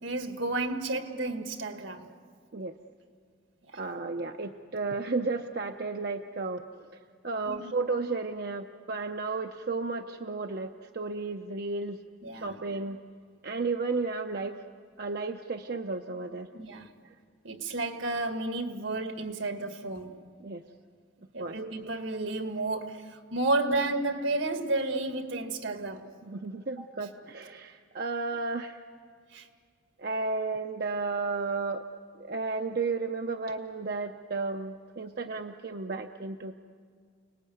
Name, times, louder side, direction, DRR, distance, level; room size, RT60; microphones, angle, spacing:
voice 1, 0.0-2.1 7.5-7.7 12.2-12.6 16.5-16.9 17.4-20.1 21.3-26.1 26.8-26.9 29.3-29.5, right 2 dB, 75° right, 1.8 m, -32 dB
voice 2, 3.7-6.6 7.2-12.0 12.3-13.0 13.4-14.6 15.0-16.5 20.4-20.6 21.4-21.6 26.3-28.8 30.0-31.8 32.2-36.5, right 3 dB, 50° right, 0.7 m, -33 dB
29.5 x 19.5 x 9.3 m
head